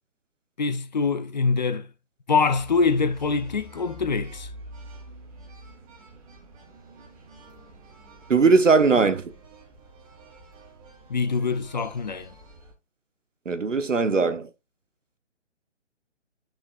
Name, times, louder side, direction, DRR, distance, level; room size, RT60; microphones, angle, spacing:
voice 1, 0.6-1.9 2.3-4.5 11.1-12.3, left 4 dB, 35° left, 0.5 m, -24 dB
sound 1, 2.5-12.7, right 1 dB, 30° right, 2.2 m, -47 dB
voice 2, 8.3-9.2 13.5-14.5, right 4 dB, 85° right, 1.1 m, -19 dB
8.5 x 6.2 x 2.4 m
figure-of-eight pair, 145°, 37 cm